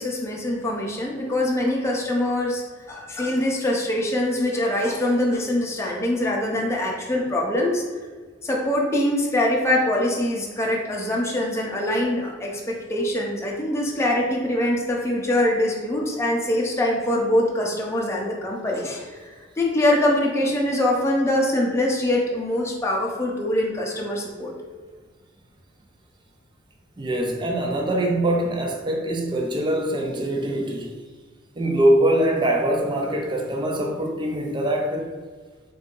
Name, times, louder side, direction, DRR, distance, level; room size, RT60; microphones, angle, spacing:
voice 1, 0.0-2.6 2.9-7.8 8.4-24.5, left 1 dB, 15° left, -2 dB, 0.6 m, -23 dB
voice 2, 27.0-30.9 31.6-35.1, right 1 dB, 25° right, 1 dB, 0.4 m, -23 dB
3.8 x 2.7 x 3.7 m, 1.4 s
head